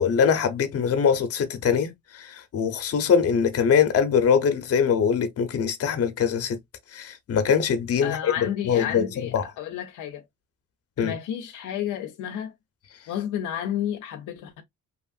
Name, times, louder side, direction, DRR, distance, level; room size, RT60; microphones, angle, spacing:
voice 1, 0.0-6.6 6.9-8.3 8.7-9.1 9.3-9.4 11.0-11.1, left 7 dB, 50° left, 0.8 m, -22 dB
voice 2, 8.0-10.3 11.0-12.5 13.1-14.6, left 10 dB, 85° left, 0.6 m, -31 dB
3.0 x 2.4 x 2.4 m
cardioid pair, 90°, 30 cm